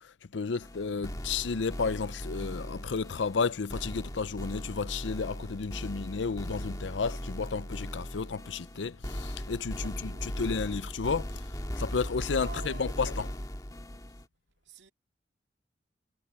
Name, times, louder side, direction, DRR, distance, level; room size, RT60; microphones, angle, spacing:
voice 1, 0.0-11.3 11.8-13.3, left 5 dB, 90° left, 0.6 m, -32 dB
sound 1, 0.6-14.3, equal, 20° left, 1.9 m, -38 dB
voice 2, 9.7-10.7 12.4-13.3 14.6-14.9, right 3 dB, 75° right, 2.4 m, -49 dB
head